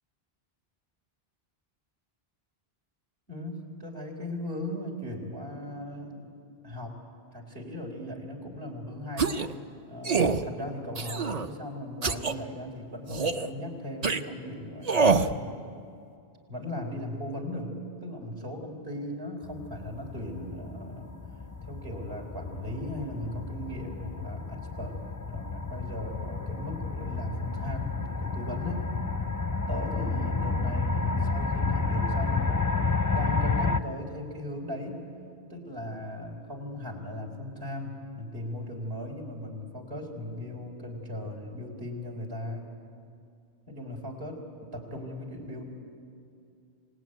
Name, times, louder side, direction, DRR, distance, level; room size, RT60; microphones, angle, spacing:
voice 1, 3.3-6.3 6.6-7.0 7.3-9.4 9.9-15.7 16.5-21.2 21.7-25.0 25.3-28.9 29.7-35.1 35.5-42.7 43.7-45.6, left 1 dB, 75° right, 0 dB, 4.3 m, -38 dB
sound 1, 9.2-9.5 10.0-10.4 11.0-11.5 12.0-12.3 13.1-13.5 14.0-14.2 14.8-15.3, right 4 dB, 40° right, 0.8 m, -25 dB
sound 2, 19.4-33.8, left 4 dB, 25° left, 0.5 m, -31 dB
27.5 x 19.0 x 9.4 m, 2.5 s
omnidirectional pair, 1.1 m